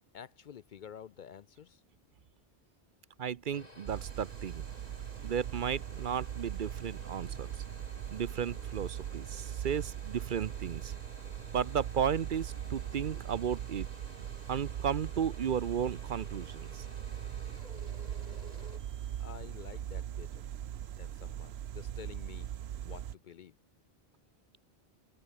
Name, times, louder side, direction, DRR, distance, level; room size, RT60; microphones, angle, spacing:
voice 1, 0.1-1.8 19.2-20.4 21.0-22.5 22.8-23.5, left 8 dB, 60° left, 0.6 m, -49 dB
sound 1, 3.2-19.4, left 1 dB, 40° left, 6.0 m, -53 dB
voice 2, 3.2-4.6 5.2-7.6 8.1-10.9 11.5-13.9 14.5-16.9, right 8 dB, 55° right, 0.8 m, -34 dB
sound 2, 3.9-23.2, right 10 dB, 85° right, 0.9 m, -40 dB
omnidirectional pair, 1.0 m